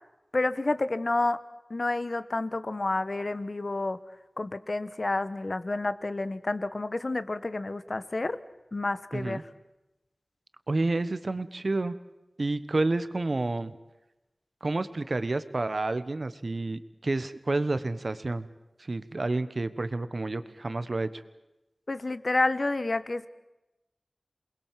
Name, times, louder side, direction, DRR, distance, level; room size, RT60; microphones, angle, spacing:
voice 1, 0.3-1.4 1.7-4.0 4.4-8.4 8.7-9.4 21.9-23.3, left 2 dB, 55° left, 13 dB, 1.2 m, -29 dB
voice 2, 9.1-9.4 10.7-11.9 12.4-13.8 14.6-18.5 18.8-21.2, right 2 dB, 60° right, 13 dB, 1.2 m, -29 dB
28.0 x 21.0 x 7.6 m, 0.98 s
wide cardioid pair, 55°, 0 cm